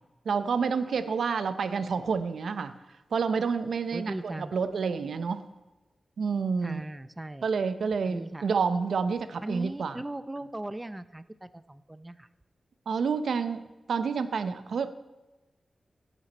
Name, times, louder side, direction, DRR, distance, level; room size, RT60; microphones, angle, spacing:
voice 1, 0.3-2.7 3.1-5.4 6.2-6.8 7.4-10.0 12.9-14.9, right 5 dB, 90° right, 11 dB, 0.7 m, -29 dB
voice 2, 3.9-4.5 6.6-7.5 8.1-8.5 9.4-12.3, right 1 dB, 15° right, 14 dB, 0.5 m, -38 dB
17.0 x 8.2 x 4.2 m, 1.1 s
wide cardioid pair, 130°, 0 cm